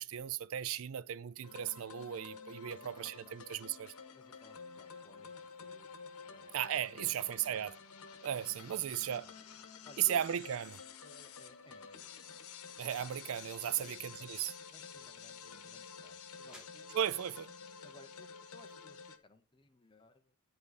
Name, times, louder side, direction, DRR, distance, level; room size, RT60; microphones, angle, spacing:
voice 1, 0.0-3.9 6.5-7.8 8.2-9.3 10.0-10.8 12.8-14.0 14.3-14.5 16.9-17.5, right 10 dB, 65° right, 0.4 m, -36 dB
sound 1, 1.4-19.2, left 6 dB, 85° left, 1.1 m, -51 dB
voice 2, 2.7-3.7 4.1-5.9 6.2-7.7 8.5-9.4 9.8-10.2 11.0-12.9 13.7-14.4 14.7-16.9 17.8-20.3, left 2 dB, 20° left, 0.9 m, -61 dB
sound 2, 16.1-19.7, left 1 dB, 5° right, 2.3 m, -66 dB
9.3 x 5.4 x 4.1 m
head